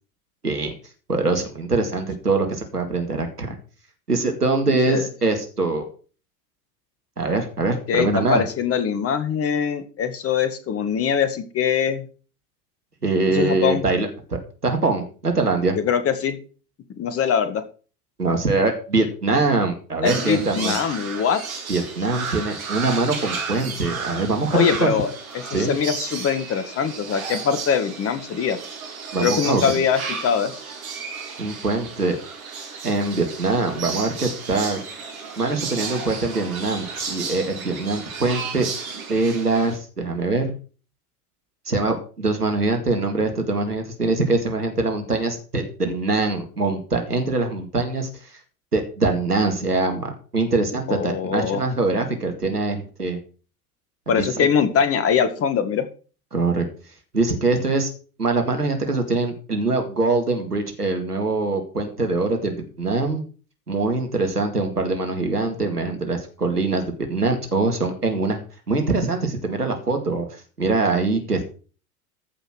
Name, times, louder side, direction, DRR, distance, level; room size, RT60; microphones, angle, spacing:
voice 1, 1.1-3.6 4.1-5.9 7.2-8.4 13.0-15.8 18.2-20.7 21.7-24.9 25.5-25.7 29.1-29.8 31.4-32.2 32.8-34.8 35.4-38.7 39.1-40.5 41.7-48.3 48.7-53.2 54.2-54.5 56.3-56.6 57.1-57.9 58.2-63.2 63.7-68.4 68.7-71.4, right 3 dB, 85° right, 5 dB, 2.2 m, -23 dB
voice 2, 7.9-12.0 13.3-13.8 15.8-16.4 17.0-17.6 20.0-21.4 24.5-28.6 29.2-30.5 50.9-51.6 54.1-55.9, left 7 dB, 30° left, 11 dB, 2.0 m, -22 dB
sound 1, 20.0-39.8, right 5 dB, 65° right, 3.4 m, -33 dB
14.0 x 5.9 x 6.1 m, 0.38 s
figure-of-eight pair, 80°, 45 cm